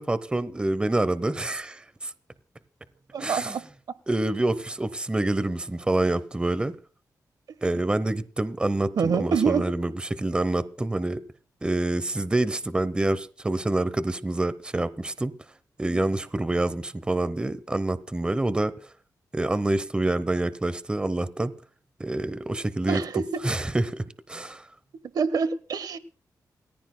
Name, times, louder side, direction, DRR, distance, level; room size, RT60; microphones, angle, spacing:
voice 1, 0.0-2.1 3.2-3.6 4.1-6.7 7.6-11.2 11.6-15.3 15.8-18.7 19.3-21.5 22.0-24.0 24.3-24.6, right 2 dB, 15° right, 0.8 m, -27 dB
voice 2, 3.1-3.6 7.7-7.8 9.0-9.7 15.9-16.0 22.9-23.2 25.1-26.0, right 6 dB, 70° right, 1.1 m, -26 dB
27.5 x 15.0 x 2.2 m
wide cardioid pair, 120°, 7 cm